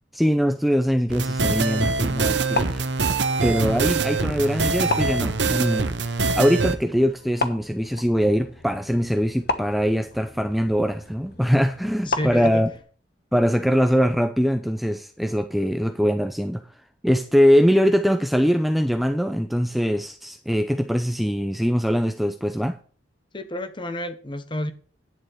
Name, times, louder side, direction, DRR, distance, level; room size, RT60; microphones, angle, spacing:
voice 1, 0.1-2.8 3.4-5.9 6.4-12.7 13.3-16.6 17.0-22.8, equal, ahead, 0.6 m, -22 dB
sound 1, 1.1-6.8, right 4 dB, 70° right, 1.0 m, -24 dB
sound 2, 2.3-12.8, left 3 dB, 60° left, 1.2 m, -34 dB
voice 2, 12.1-12.6 23.3-24.7, left 1 dB, 25° left, 1.1 m, -30 dB
10.5 x 7.2 x 4.7 m
head